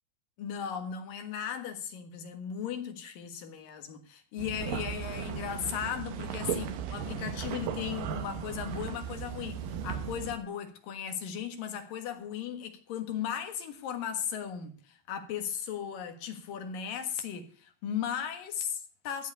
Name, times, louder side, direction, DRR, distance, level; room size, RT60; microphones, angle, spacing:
voice 1, 0.4-19.3, left 8 dB, 85° left, 3.3 m, -37 dB
sound 1, 4.4-10.4, right 8 dB, 85° right, 2.8 m, -36 dB
14.5 x 5.0 x 9.2 m
omnidirectional pair, 3.8 m